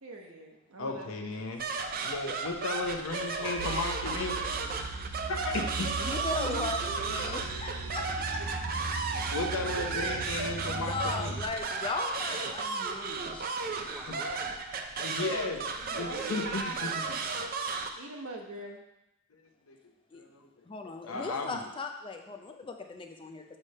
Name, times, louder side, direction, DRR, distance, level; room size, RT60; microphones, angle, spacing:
voice 1, 0.0-1.4 6.4-8.4 9.6-10.2 15.9-17.0 18.0-18.8, right 2 dB, 80° right, 1 dB, 1.1 m, -42 dB
voice 2, 0.8-1.6 2.0-4.3 5.3-6.1 9.3-11.4 14.1-14.2 15.0-17.0 19.3-19.4 19.7-19.8 20.1-20.5 21.0-21.6, left 3 dB, 75° left, 3 dB, 0.9 m, -35 dB
sound 1, 1.6-17.9, right 4 dB, 45° right, 0.5 m, -34 dB
voice 3, 3.4-5.2 13.6-14.6 16.2-16.3, right 1 dB, 15° right, -1 dB, 0.9 m, -46 dB
sound 2, 3.6-11.5, right 3 dB, 60° right, 0.8 m, -39 dB
voice 4, 6.0-8.0 8.3-8.4 10.8-13.5 20.1-20.2 20.7-23.6, left 3 dB, 25° left, 4 dB, 0.4 m, -37 dB
7.2 x 3.3 x 5.3 m, 0.89 s
head